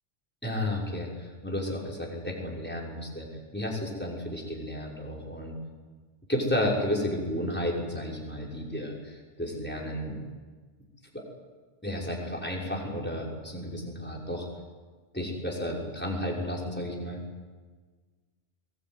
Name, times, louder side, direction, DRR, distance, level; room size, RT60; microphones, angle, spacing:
voice 1, 0.4-3.3 3.5-5.5 6.3-10.2 11.1-11.2 11.8-14.5 15.1-17.2, left 1 dB, 10° left, -3 dB, 6.0 m, -32 dB
22.5 x 20.5 x 9.4 m, 1.4 s
omnidirectional pair, 1.2 m